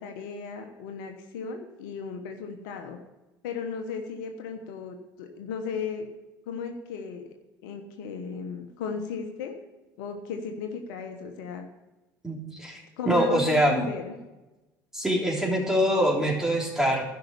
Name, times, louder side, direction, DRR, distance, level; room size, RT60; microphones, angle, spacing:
voice 1, 0.0-3.0 3.4-6.1 6.5-7.3 7.6-9.5 10.0-11.6 13.0-14.1, left 5 dB, 70° left, 5 dB, 1.2 m, -35 dB
voice 2, 12.2-13.9 14.9-17.0, equal, 5° right, -2 dB, 3.5 m, -24 dB
12.0 x 5.7 x 8.4 m, 1.1 s
hypercardioid pair, 65°, 11 cm